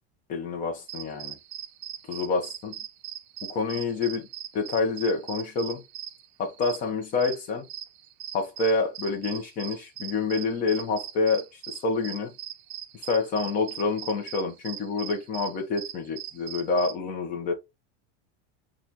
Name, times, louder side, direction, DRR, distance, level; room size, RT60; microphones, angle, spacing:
voice 1, 0.3-1.4 2.1-2.8 3.5-4.3 4.5-5.8 6.4-7.6 8.3-12.3 12.9-17.5, left 4 dB, 25° left, 0.8 m, -28 dB
sound 1, 0.9-16.9, right 11 dB, 45° right, 0.6 m, -40 dB
3.0 x 2.4 x 3.9 m
supercardioid pair, 160°, 32 cm